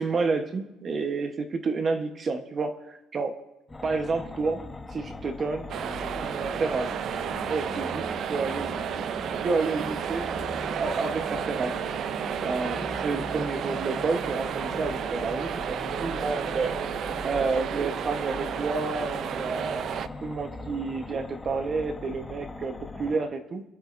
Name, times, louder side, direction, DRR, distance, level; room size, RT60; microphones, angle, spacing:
voice 1, 0.0-3.3 3.8-4.6 4.9-5.7 6.1-6.9 7.5-8.8 9.4-11.8 12.4-16.8 17.2-19.9 20.2-23.6, right 4 dB, 30° right, 7 dB, 1.0 m, -30 dB
sound 1, 3.7-23.2, left 3 dB, 10° left, 1.0 m, -40 dB
sound 2, 5.7-20.1, right 8 dB, 45° right, 0.5 m, -32 dB
25.0 x 11.5 x 2.6 m, 0.91 s
cardioid pair, 160°, 0 cm